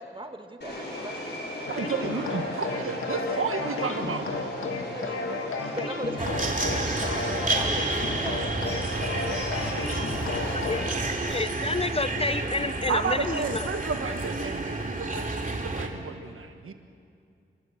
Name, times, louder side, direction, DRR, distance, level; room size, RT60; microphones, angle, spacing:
voice 1, 0.0-1.4 4.8-5.3 5.6-8.4, right 1 dB, 25° right, 5 dB, 2.2 m, -39 dB
Subway metro underground, 0.6-11.2, left 1 dB, 55° left, 6.7 m, -38 dB
sound 1, 1.7-10.9, left 3 dB, 90° left, 2.1 m, -33 dB
voice 2, 1.7-4.3 12.9-16.7, right 5 dB, 80° right, 7 dB, 1.5 m, -32 dB
sound 2, 6.2-15.9, right 2 dB, 40° right, 2.7 m, -30 dB
voice 3, 10.4-10.8 11.2-13.6, left 3 dB, 30° left, 16 dB, 0.5 m, -29 dB
29.5 x 14.0 x 7.8 m, 2.4 s
cardioid pair, 55°, 21 cm